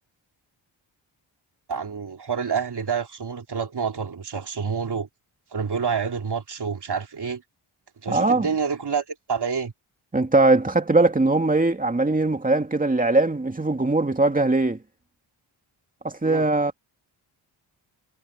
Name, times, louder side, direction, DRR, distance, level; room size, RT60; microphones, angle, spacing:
voice 1, 1.7-5.1 5.5-7.4 8.0-9.7 16.2-16.5, right 6 dB, 50° right, 3.5 m, -28 dB
voice 2, 8.1-8.5 10.1-14.8 16.0-16.7, right 2 dB, 15° right, 2.4 m, -20 dB
wide cardioid pair, 130°, 49 cm